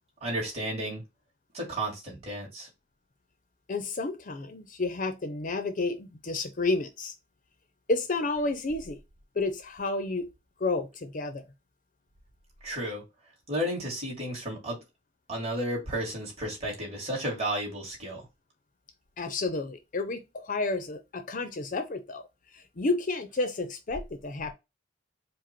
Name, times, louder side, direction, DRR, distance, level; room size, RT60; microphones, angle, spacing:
voice 1, 0.2-1.0 1.5-2.7 12.6-13.0 13.5-14.8 15.3-18.2, right 1 dB, 35° right, 2.2 m, -32 dB
voice 2, 3.7-7.1 7.9-9.0 9.4-10.3 10.6-11.4 19.2-22.3 22.5-24.5, left 3 dB, 40° left, 0.6 m, -31 dB
4.8 x 2.1 x 4.4 m
head